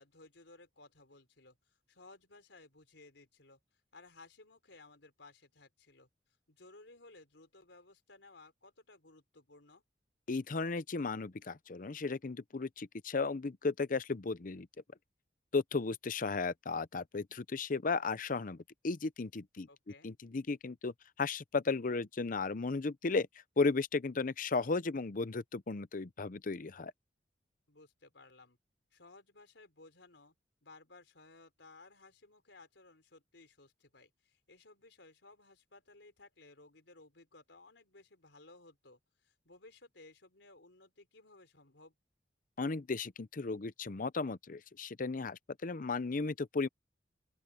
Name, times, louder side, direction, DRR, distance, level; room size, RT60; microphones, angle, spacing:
voice 1, 0.0-3.6 3.9-6.1 6.5-9.8 19.7-20.1 27.7-28.6 28.9-30.3 30.6-42.0, left 2 dB, 85° left, 4.2 m, -59 dB
voice 2, 10.3-14.7 15.5-18.6 18.8-19.7 20.0-20.9 21.2-23.3 23.6-26.9 42.6-46.7, left 4 dB, 50° left, 0.6 m, -35 dB
open air
head